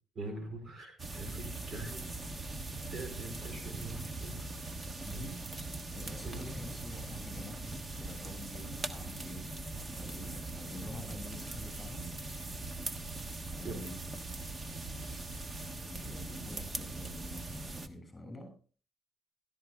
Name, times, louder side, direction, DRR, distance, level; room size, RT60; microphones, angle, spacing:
voice 1, 0.1-2.1 2.9-4.5 5.1-5.3 6.2-6.5 13.6-13.8, right 2 dB, 55° right, 4.0 m, -43 dB
sound 1, 1.0-17.9, right 2 dB, 30° right, 1.3 m, -41 dB
voice 2, 5.0-5.4 5.9-12.1 13.5-14.0 15.8-18.6, left 1 dB, 15° left, 7.2 m, -47 dB
16.5 x 13.5 x 2.4 m
cardioid pair, 90°, 0 cm